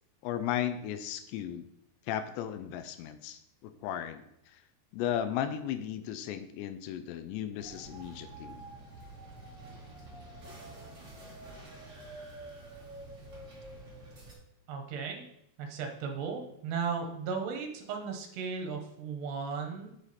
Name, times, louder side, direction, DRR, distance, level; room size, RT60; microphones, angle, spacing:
voice 1, 0.2-1.6 2.1-4.2 4.9-8.6, left 10 dB, 85° left, 10 dB, 2.8 m, -35 dB
sound 1, 7.6-14.3, right 2 dB, 35° right, 1.1 m, -48 dB
voice 2, 14.7-15.3 15.6-19.9, right 5 dB, 75° right, 3 dB, 3.2 m, -36 dB
7.9 x 6.7 x 4.2 m, 0.77 s
omnidirectional pair, 5.0 m